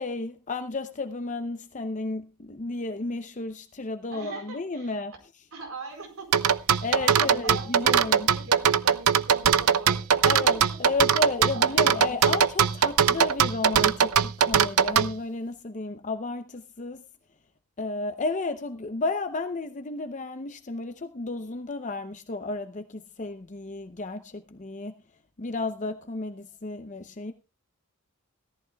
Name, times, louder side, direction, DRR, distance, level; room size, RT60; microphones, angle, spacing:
voice 1, 0.0-5.5 6.8-8.3 10.3-17.1 17.8-24.9 25.4-27.3, left 3 dB, 35° left, 0.7 m, -32 dB
voice 2, 4.1-4.9 5.5-6.3 6.6-10.6 11.5-12.1, right 4 dB, 65° right, 4.5 m, -41 dB
sound 1, 6.3-15.1, right 8 dB, 85° right, 0.6 m, -20 dB
17.0 x 14.0 x 2.3 m
head